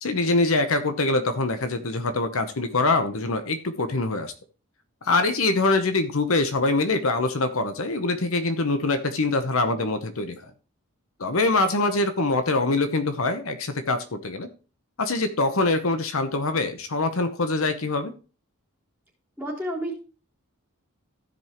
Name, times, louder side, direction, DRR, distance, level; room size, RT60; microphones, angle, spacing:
voice 1, 0.0-4.3 5.0-10.5 11.2-14.5 15.0-18.1, left 2 dB, 70° left, 9 dB, 0.9 m, -24 dB
voice 2, 19.4-20.0, equal, 10° right, -4 dB, 3.7 m, -30 dB
15.5 x 5.3 x 3.0 m, 0.34 s
head